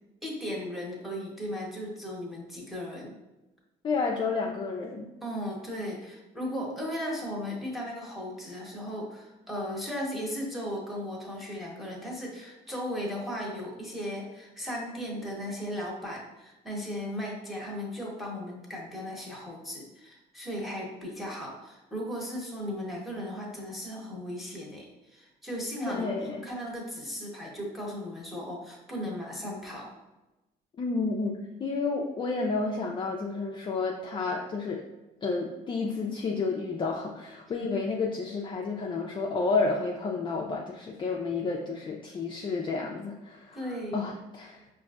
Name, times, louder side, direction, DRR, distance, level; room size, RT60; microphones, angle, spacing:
voice 1, 0.2-3.1 5.2-26.1 26.4-29.9 43.5-44.0, equal, ahead, -4 dB, 1.0 m, -36 dB
voice 2, 3.8-5.1 25.9-26.5 30.8-34.9 35.2-44.6, left 4 dB, 30° left, 0 dB, 0.4 m, -31 dB
5.1 x 2.6 x 2.4 m, 1.0 s
cardioid pair, 110°, 17 cm